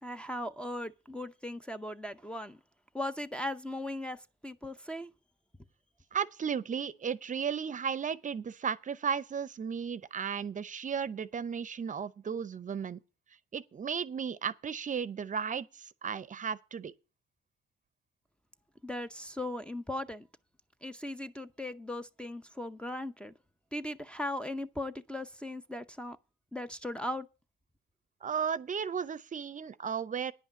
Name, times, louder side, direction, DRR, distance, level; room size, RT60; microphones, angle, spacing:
voice 1, 0.0-2.6 2.9-5.1 18.8-20.3 20.8-23.3 23.7-26.2 26.5-27.3, left 1 dB, 5° left, 0.6 m, -38 dB
voice 2, 6.1-13.0 13.5-16.9 28.2-30.3, right 7 dB, 40° right, 0.7 m, -34 dB
10.0 x 5.6 x 8.5 m
cardioid pair, 90°, 20 cm